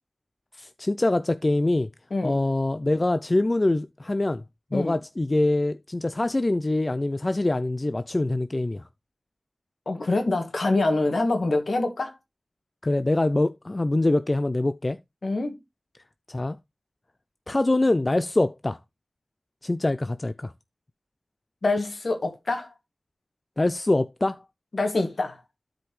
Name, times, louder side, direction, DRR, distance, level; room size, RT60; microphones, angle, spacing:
voice 1, 0.6-1.9 2.2-4.4 4.7-8.8 12.8-15.0 16.3-16.6 17.5-18.8 19.6-20.5 23.6-24.4, left 2 dB, 40° left, 0.4 m, -24 dB
voice 2, 9.9-12.2 15.2-15.6 21.6-22.7 24.7-25.4, left 2 dB, 70° left, 2.0 m, -25 dB
12.5 x 5.0 x 3.1 m
cardioid pair, 45°, 0 cm